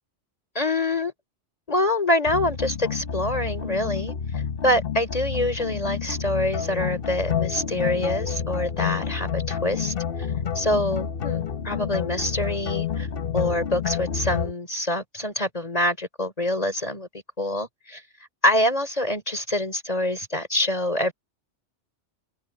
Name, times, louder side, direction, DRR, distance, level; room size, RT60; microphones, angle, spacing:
voice 1, 0.6-1.1 1.7-9.9 10.5-13.1 13.3-17.1 17.4-18.0 18.4-21.1, left 1 dB, 30° left, 3.9 m, -25 dB
sound 1, 2.3-14.5, left 7 dB, 55° left, 1.1 m, -29 dB
open air
omnidirectional pair, 1.2 m